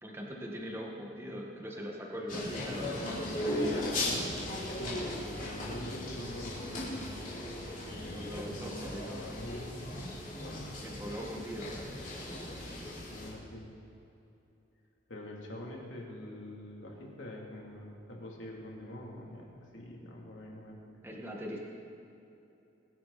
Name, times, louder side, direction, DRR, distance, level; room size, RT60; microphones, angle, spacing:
voice 1, 0.0-3.5 8.1-9.4 10.8-12.0 21.0-21.6, equal, 15° right, -2 dB, 1.8 m, -41 dB
sound 1, 2.3-13.3, left 1 dB, 45° left, 4.2 m, -37 dB
voice 2, 3.4-7.0 7.9-8.6 8.9-9.8 10.4-10.6 13.1-13.7 15.1-20.8, left 1 dB, 85° left, -2 dB, 3.2 m, -44 dB
23.5 x 11.0 x 4.3 m, 2.8 s
head